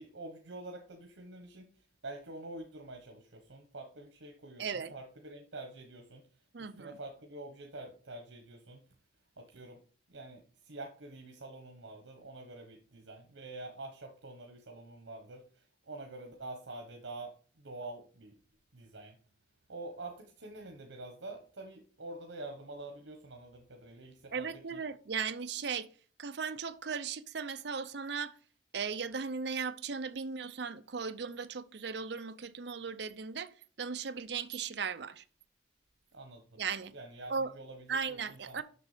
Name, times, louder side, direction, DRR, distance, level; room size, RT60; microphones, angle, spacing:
voice 1, 0.0-1.7 2.0-6.2 6.6-8.8 9.4-9.8 10.1-18.3 18.7-19.2 19.7-24.8 36.1-36.6 36.9-38.6, right 2 dB, 90° right, 1.2 m, -47 dB
voice 2, 4.6-4.9 6.5-6.9 24.3-25.9 26.2-28.3 28.7-33.5 33.8-35.2 36.6-36.9 37.3-37.5 37.9-38.6, right 5 dB, 65° right, 0.6 m, -37 dB
7.0 x 6.2 x 4.9 m
head